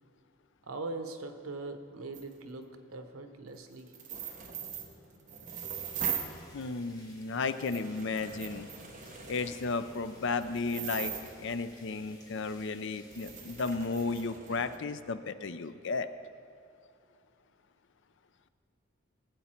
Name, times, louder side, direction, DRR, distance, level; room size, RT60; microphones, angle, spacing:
voice 1, 0.7-3.9, right 3 dB, 85° right, 7 dB, 1.0 m, -41 dB
sound 1, 2.1-2.2 3.9-6.4 7.1-7.2 7.6-11.6 12.6-12.7 13.1-14.8, right 8 dB, 35° right, 1.0 m, -40 dB
sound 2, 5.4-14.2, left 1 dB, 20° left, 1.8 m, -58 dB
voice 2, 6.5-8.7 9.3-11.1 11.4-16.1, left 4 dB, 60° left, 11 dB, 0.5 m, -34 dB
17.5 x 8.3 x 4.4 m, 2.4 s
head